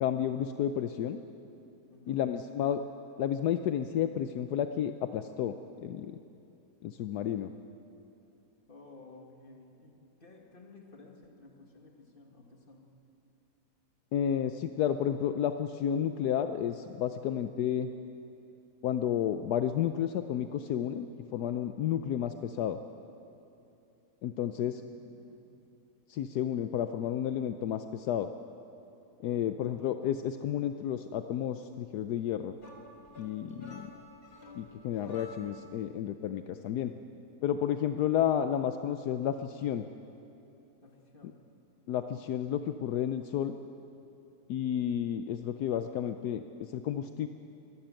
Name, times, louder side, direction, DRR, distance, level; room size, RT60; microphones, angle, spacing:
voice 1, 0.0-1.2 2.1-2.8 3.2-5.6 5.8-6.2 6.8-7.5 14.1-17.9 18.8-21.1 21.3-22.8 24.2-24.8 26.1-28.3 29.2-32.6 33.2-33.9 34.5-36.9 37.4-39.9 41.9-43.6 44.5-47.3, left 9 dB, 75° left, 9 dB, 1.2 m, -31 dB
voice 2, 1.9-2.3 8.7-12.9 24.7-25.6 29.3-29.7 40.8-41.4, left 3 dB, 30° left, 1 dB, 2.3 m, -55 dB
sound 1, 32.6-35.7, left 1 dB, 60° left, 2.9 m, -50 dB
23.5 x 13.0 x 8.9 m, 2.8 s
omnidirectional pair, 1.7 m